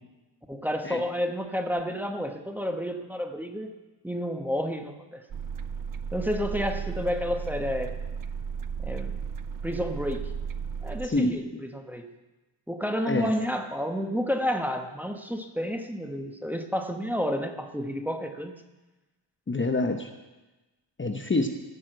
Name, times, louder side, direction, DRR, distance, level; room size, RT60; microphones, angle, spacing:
voice 1, 0.5-3.7 4.0-5.2 6.1-7.9 8.8-9.2 9.6-10.3 10.8-12.1 12.7-18.5, equal, 5° right, 4 dB, 1.1 m, -30 dB
sound 1, 5.3-11.1, right 6 dB, 50° right, 0.6 m, -34 dB
voice 2, 11.0-11.6 13.1-13.3 19.5-20.1 21.0-21.5, left 2 dB, 25° left, 5 dB, 0.9 m, -27 dB
14.0 x 6.4 x 7.8 m, 1.1 s
cardioid pair, 85°, 45 cm